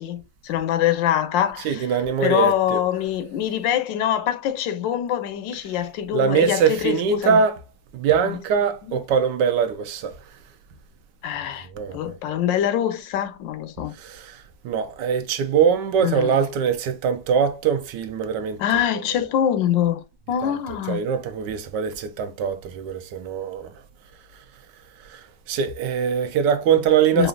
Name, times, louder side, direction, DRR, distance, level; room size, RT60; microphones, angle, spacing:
voice 1, 0.0-7.4 8.2-8.4 8.9-9.0 11.2-11.7 11.9-13.9 16.0-16.4 18.6-21.0 27.1-27.3, left 10 dB, 90° left, 1.3 m, -24 dB
voice 2, 1.6-2.8 6.1-7.6 7.9-10.1 11.7-12.0 14.0-14.3 14.6-18.6 20.4-20.5 20.9-23.7 25.1-25.2 25.5-27.3, right 7 dB, 75° right, 1.2 m, -22 dB
4.9 x 2.6 x 2.5 m
omnidirectional pair, 1.9 m